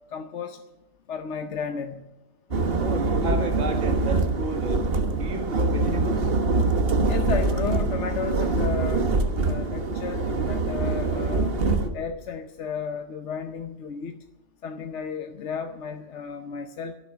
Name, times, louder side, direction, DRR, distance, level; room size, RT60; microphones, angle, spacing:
voice 1, 0.1-0.6 1.1-2.1 7.1-9.1 9.4-11.5 11.9-14.2 14.6-16.9, left 6 dB, 65° left, 7 dB, 1.1 m, -33 dB
sound 1, 2.5-11.9, right 3 dB, 50° right, 1.5 m, -24 dB
voice 2, 2.8-4.8 5.1-6.3, right 3 dB, 70° right, 5 dB, 2.1 m, -32 dB
16.5 x 7.7 x 9.6 m, 1.0 s
omnidirectional pair, 1.3 m